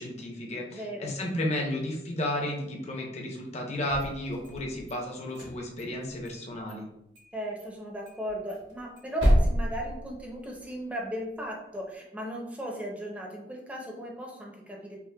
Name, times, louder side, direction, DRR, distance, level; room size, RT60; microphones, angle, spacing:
voice 1, 0.0-6.9, left 1 dB, 40° left, 0 dB, 0.7 m, -33 dB
voice 2, 0.7-1.1 7.3-15.0, equal, 10° right, -2 dB, 0.6 m, -36 dB
sound 1, 3.8-4.9 5.3-6.4 6.7-6.8 7.2-7.3 7.6-7.7 8.1-10.6, equal, 80° right, 1.2 m, -29 dB
5.6 x 2.1 x 2.2 m, 0.84 s
head